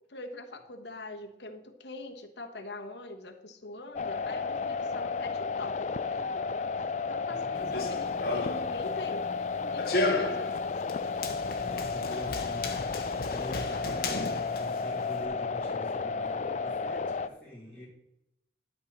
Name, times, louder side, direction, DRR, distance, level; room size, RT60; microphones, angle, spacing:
voice 1, 0.1-6.5 7.1-9.3 9.5-10.7, left 2 dB, 75° left, 4 dB, 1.2 m, -43 dB
sound 1, 3.9-17.3, left 4 dB, 40° left, 0.4 m, -33 dB
voice 2, 7.3-8.6 11.6-12.7 13.2-17.9, equal, 5° right, -9 dB, 3.2 m, -45 dB
Run, 7.5-15.3, left 2 dB, 55° left, 1.3 m, -35 dB
12.0 x 4.6 x 6.6 m, 0.84 s
head